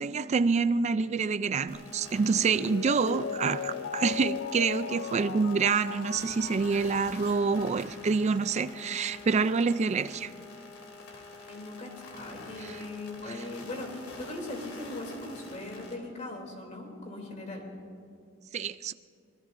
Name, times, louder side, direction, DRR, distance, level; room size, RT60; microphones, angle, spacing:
voice 1, 0.0-10.3 12.6-12.7 18.5-18.9, right 5 dB, 35° right, 13 dB, 0.3 m, -27 dB
sound 1, 1.7-15.9, left 3 dB, 90° left, 2.8 m, -47 dB
Mallet percussion, 2.5-8.0 8.4-8.5, left 7 dB, 55° left, 0.3 m, -38 dB
voice 2, 11.1-17.7, left 2 dB, 35° left, 1 dB, 2.9 m, -40 dB
26.0 x 19.5 x 2.6 m, 2.5 s
head